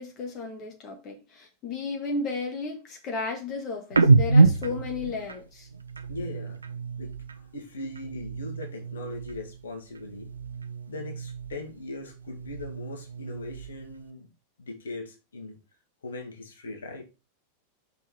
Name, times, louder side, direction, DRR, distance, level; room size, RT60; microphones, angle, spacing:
voice 1, 0.0-5.7, left 3 dB, 35° left, 1.7 m, -34 dB
sound 1, 3.9-7.5 7.8-9.6 9.9-11.8 12.1-14.0, right 3 dB, 75° right, 0.5 m, -27 dB
voice 2, 6.1-6.6 7.0-10.3 10.9-14.3 14.6-15.6 16.0-17.0, left 2 dB, 65° left, 2.0 m, -40 dB
5.7 x 4.6 x 4.7 m
figure-of-eight pair, 90°, 0 cm